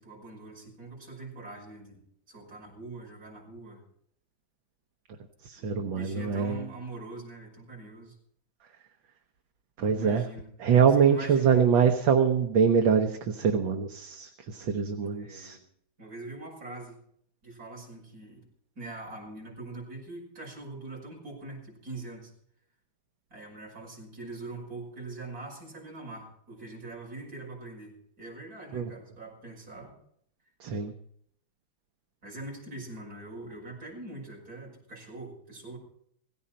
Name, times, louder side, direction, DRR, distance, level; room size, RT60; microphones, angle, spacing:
voice 1, 0.0-2.0 2.3-3.8 5.6-8.1 9.8-10.5 11.0-11.7 15.0-15.6 16.0-17.0 17.4-18.5 18.8-22.3 23.3-29.9 32.2-35.8, right 2 dB, 45° right, -2 dB, 6.2 m, -43 dB
voice 2, 5.4-6.7 9.8-10.3 10.6-15.6 28.7-28.9 30.6-30.9, right 7 dB, 70° right, 5 dB, 1.7 m, -24 dB
17.5 x 15.5 x 4.3 m, 0.66 s
omnidirectional pair, 2.3 m